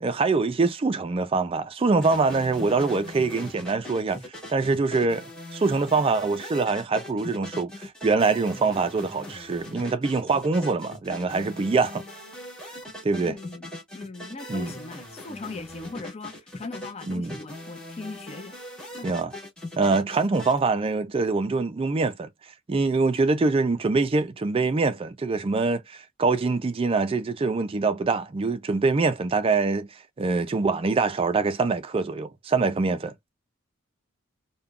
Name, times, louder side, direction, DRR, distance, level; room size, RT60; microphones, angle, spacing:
voice 1, 0.0-4.2 4.5-12.0 13.0-13.3 14.5-14.7 17.1-17.3 19.0-19.3 19.8-22.3 22.7-29.9 30.2-33.3, right 3 dB, 25° right, 0.3 m, -24 dB
sound 1, 2.0-20.6, left 1 dB, 5° left, 1.8 m, -40 dB
voice 2, 13.2-18.6 18.8-19.2, left 3 dB, 30° left, 0.5 m, -39 dB
3.6 x 2.2 x 2.3 m
head